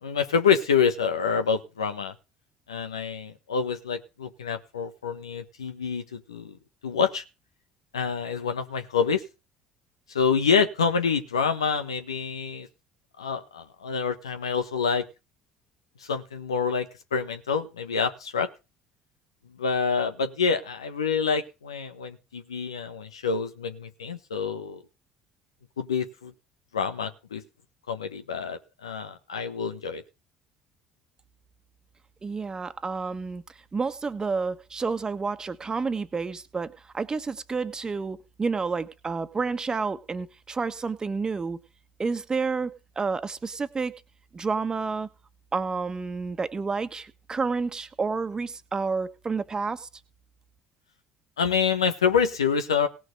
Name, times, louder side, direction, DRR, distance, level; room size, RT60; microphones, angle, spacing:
voice 1, 0.0-2.1 2.7-6.6 6.8-7.2 7.9-9.2 10.1-12.7 13.2-15.1 16.0-18.5 19.6-24.8 25.8-26.3 26.7-27.4 27.9-30.0 51.4-52.9, left 6 dB, 85° left, 8 dB, 1.3 m, -27 dB
voice 2, 32.2-33.4 33.7-41.6 42.0-43.9 44.3-45.1 45.5-49.9, right 4 dB, 25° right, 10 dB, 1.4 m, -30 dB
18.5 x 6.2 x 4.9 m, 0.29 s
hypercardioid pair, 60°, 3 cm